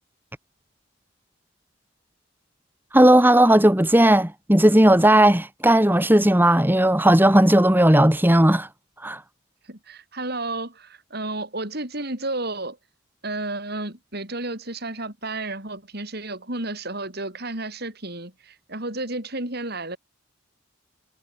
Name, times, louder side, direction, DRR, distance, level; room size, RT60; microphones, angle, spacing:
voice 1, 2.9-8.7 9.0-9.2, right 1 dB, 10° right, 1.9 m, -16 dB
voice 2, 9.7-12.8 13.2-20.0, right 2 dB, 50° right, 6.2 m, -32 dB
head